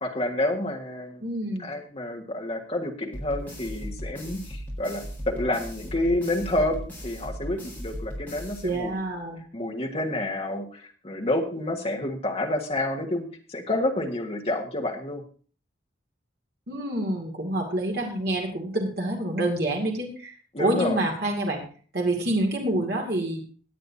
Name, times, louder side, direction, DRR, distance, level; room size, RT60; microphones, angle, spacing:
voice 1, 0.0-1.2 1.6-9.0 9.5-15.2 20.5-21.0, left 1 dB, 35° left, 1 dB, 1.6 m, -29 dB
voice 2, 1.2-1.7 8.6-9.4 16.7-20.3 20.6-21.6 21.9-23.4, right 1 dB, 55° right, 0 dB, 2.3 m, -27 dB
sound 1, 3.1-9.2, equal, 10° left, 4.5 m, -37 dB
18.0 x 9.1 x 2.8 m, 0.42 s
head